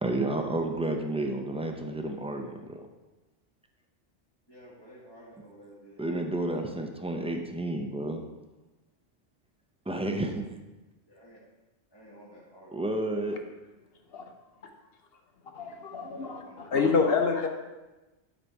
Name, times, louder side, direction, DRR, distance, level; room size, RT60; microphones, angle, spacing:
voice 1, 0.0-2.8 6.0-8.2 9.9-10.5 12.7-13.4, right 1 dB, 10° right, 4 dB, 0.3 m, -31 dB
voice 2, 4.5-6.6 11.1-11.4 11.9-12.8 16.0-17.0, equal, 20° left, -8 dB, 1.7 m, -51 dB
voice 3, 15.5-17.5, left 5 dB, 60° left, 5 dB, 1.0 m, -27 dB
11.0 x 4.1 x 4.7 m, 1.1 s
omnidirectional pair, 1.2 m